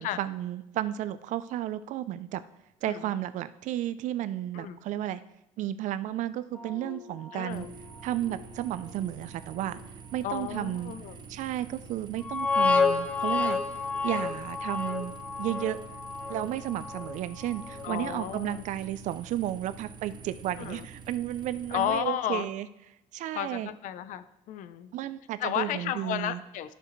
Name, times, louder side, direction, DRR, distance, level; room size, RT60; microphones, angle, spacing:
voice 1, 0.0-2.4 2.8-5.2 5.6-7.6 8.0-9.8 10.1-10.9 11.3-13.6 14.0-15.8 16.3-22.7 23.1-23.7 24.9-26.4, right 12 dB, 65° right, 14 dB, 0.5 m, -33 dB
sound 1, 6.5-7.7 8.1-8.4 8.9-9.1 9.7-9.8 10.4-10.5 12.2-17.9 18.2-18.3, left 4 dB, 10° left, 1.1 m, -30 dB
voice 2, 7.3-7.7 10.2-11.2 17.8-18.6 20.6-20.9 21.7-22.5 23.3-24.9 25.4-26.7, left 11 dB, 70° left, 13 dB, 0.6 m, -33 dB
sound 2, 7.5-22.0, right 6 dB, 35° right, 0.8 m, -47 dB
12.0 x 6.6 x 3.2 m, 0.85 s
cardioid pair, 125°, 14 cm